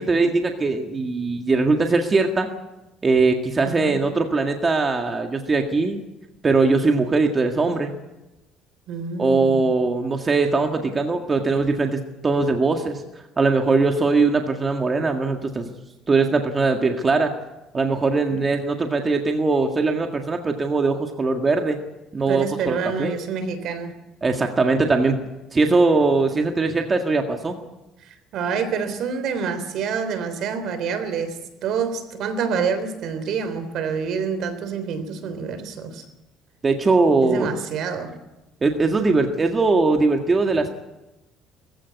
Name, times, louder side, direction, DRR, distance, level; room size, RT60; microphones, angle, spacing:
voice 1, 0.0-2.5 3.0-6.0 6.4-7.9 9.2-13.0 13.4-15.7 16.1-17.3 17.7-21.8 22.1-23.1 24.2-25.3 25.5-27.5 36.6-37.5 38.6-40.7, right 3 dB, 25° right, 4 dB, 1.8 m, -21 dB
voice 2, 3.6-4.0 8.9-9.7 18.3-18.4 22.3-23.9 28.0-36.0 37.2-38.1, right 6 dB, 60° right, 11 dB, 3.5 m, -27 dB
20.5 x 15.5 x 9.7 m, 0.99 s
cardioid pair, 125°, 0 cm